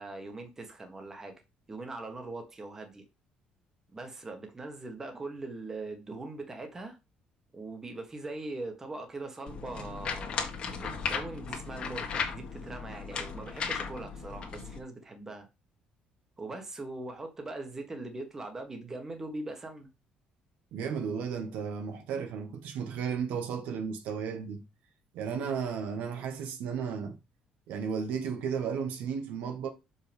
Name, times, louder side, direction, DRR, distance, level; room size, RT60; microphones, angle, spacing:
voice 1, 0.0-1.3 1.7-3.0 3.9-7.0 7.5-10.4 10.8-15.5 16.4-19.9, right 2 dB, 15° right, 1.5 m, -41 dB
sound 1, 9.5-14.8, left 6 dB, 40° left, 1.6 m, -36 dB
voice 2, 20.7-24.6 25.1-27.2 27.7-29.7, right 6 dB, 80° right, 1.4 m, -34 dB
6.8 x 5.6 x 3.5 m
cardioid pair, 160°, 3 cm